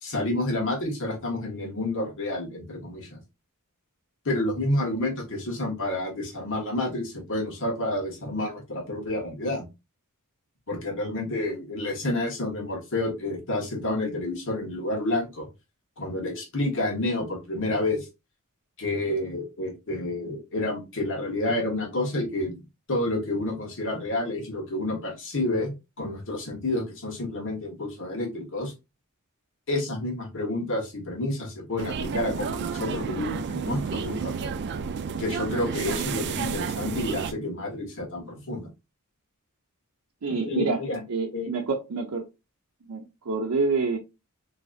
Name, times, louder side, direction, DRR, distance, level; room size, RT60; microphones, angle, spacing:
voice 1, 0.0-3.2 4.2-9.7 10.7-15.5 16.0-18.1 18.8-22.6 22.9-28.7 29.7-34.6 35.2-38.7 40.4-41.0 41.3-41.5, left 1 dB, 60° left, 1.4 m, -29 dB
sound 1, 31.8-37.3, right 6 dB, 50° right, 0.4 m, -31 dB
voice 2, 40.2-40.8 41.1-42.2 42.9-44.0, right 4 dB, 80° right, 0.7 m, -27 dB
3.8 x 3.2 x 2.4 m
head